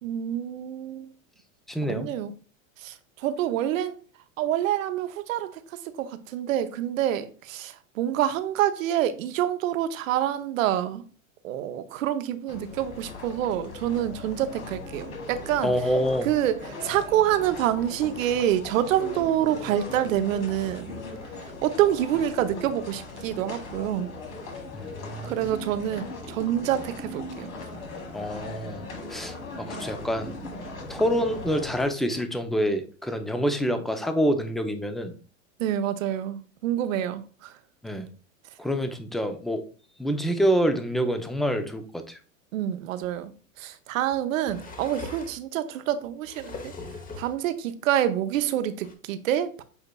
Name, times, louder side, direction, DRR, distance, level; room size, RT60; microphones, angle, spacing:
voice 1, 0.0-1.1 1.9-2.3 2.8-4.0 4.4-11.0 11.4-15.7 16.2-20.9 21.6-24.1 25.2-27.6 35.6-37.6 42.5-43.3 43.6-46.7 47.1-49.6, right 11 dB, 70° right, 0.7 m, -27 dB
voice 2, 1.7-2.1 15.6-16.3 24.7-25.4 28.1-30.3 30.9-35.1 37.8-38.1 38.6-39.6 40.0-42.2, equal, ahead, 0.4 m, -27 dB
sound 1, 12.5-31.9, left 2 dB, 80° left, 1.6 m, -39 dB
sound 2, 43.0-43.1 44.1-45.4 46.0-47.4 48.4-48.5 48.8-48.9, left 3 dB, 20° left, 0.8 m, -40 dB
8.1 x 2.9 x 2.2 m
hypercardioid pair, 95°, 41 cm